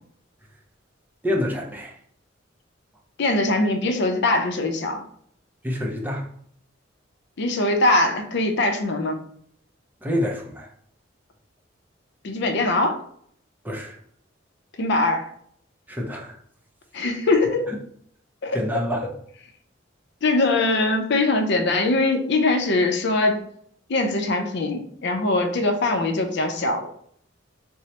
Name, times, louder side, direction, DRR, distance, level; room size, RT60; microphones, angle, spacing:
voice 1, 1.2-2.0 5.6-6.3 10.0-10.7 13.6-14.0 15.9-16.4 18.5-19.1, left 1 dB, 10° right, 0 dB, 0.5 m, -27 dB
voice 2, 3.2-5.0 7.4-9.2 12.2-13.0 14.8-15.3 16.9-17.7 18.4-18.6 20.2-23.4 23.9-26.9, left 2 dB, 60° left, 5 dB, 0.5 m, -22 dB
4.4 x 2.0 x 2.8 m, 0.63 s
head